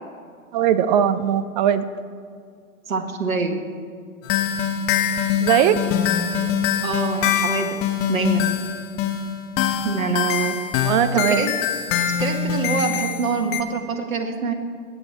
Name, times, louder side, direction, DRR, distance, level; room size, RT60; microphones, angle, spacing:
voice 1, 0.5-1.9 5.4-5.8 10.8-11.5, right 9 dB, 30° right, 14 dB, 0.6 m, -19 dB
voice 2, 2.9-3.6 6.8-7.8 8.1-8.5 9.8-10.6 11.3-11.5 12.2-14.5, right 4 dB, 70° right, 4 dB, 1.5 m, -25 dB
sound 1, 4.2-13.6, left 8 dB, 30° left, 1.2 m, -23 dB
20.0 x 8.3 x 4.5 m, 2.1 s
figure-of-eight pair, 105°, 42 cm